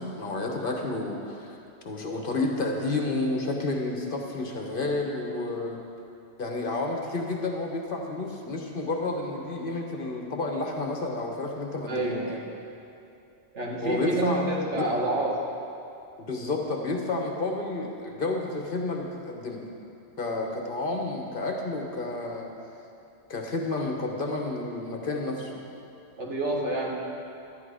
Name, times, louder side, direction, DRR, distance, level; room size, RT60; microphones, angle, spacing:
voice 1, 0.0-1.6 1.8-5.8 6.4-12.2 13.8-14.9 16.2-19.6 20.2-22.5 23.3-25.6, left 2 dB, 50° left, 1 dB, 1.2 m, -30 dB
voice 2, 11.9-12.4 13.5-15.5 26.2-26.9, right 1 dB, 75° right, -2 dB, 1.9 m, -28 dB
11.5 x 10.5 x 4.9 m, 2.7 s
omnidirectional pair, 1.2 m